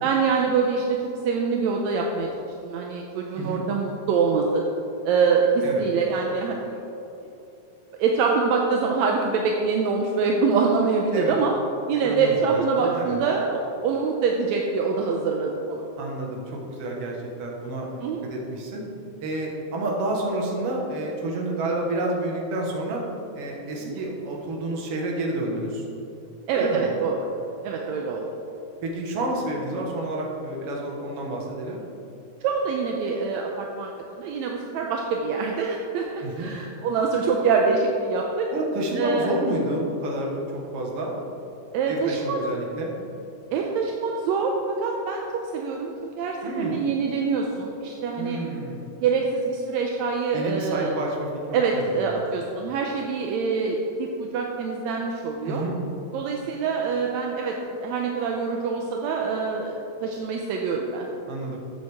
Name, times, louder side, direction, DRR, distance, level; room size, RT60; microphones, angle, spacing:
voice 1, 0.0-1.0 1.2-4.6 5.0-6.8 8.0-11.5 11.9-15.8 18.0-18.2 23.8-24.0 26.5-27.2 27.6-28.2 32.4-33.9 34.2-38.5 38.9-39.3 41.7-42.4 43.5-48.4 49.0-51.0 51.5-55.6 56.1-61.1, right 5 dB, 75° right, 1 dB, 1.7 m, -25 dB
voice 2, 3.4-3.7 5.6-5.9 11.1-11.4 12.0-13.2 16.0-18.0 18.3-18.8 19.2-23.0 23.4-25.8 26.5-26.9 28.8-31.8 36.2-36.5 38.5-40.4 40.7-41.1 41.9-43.0 46.4-46.8 48.1-48.9 50.3-52.2 55.4-55.8 61.3-61.6, right 1 dB, 55° right, -1 dB, 2.1 m, -29 dB
13.0 x 7.7 x 3.6 m, 2.9 s
omnidirectional pair, 3.8 m